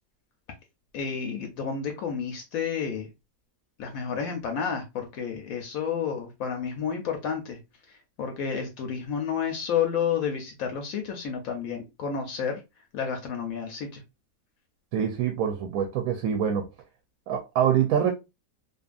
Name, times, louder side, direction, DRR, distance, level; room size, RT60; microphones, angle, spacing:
voice 1, 0.9-3.1 3.8-7.6 7.9-12.6 12.9-14.0, left 7 dB, 75° left, 1.0 m, -30 dB
voice 2, 14.9-16.7 17.3-18.1, right 8 dB, 70° right, 0.9 m, -25 dB
2.6 x 2.5 x 2.3 m
omnidirectional pair, 1.6 m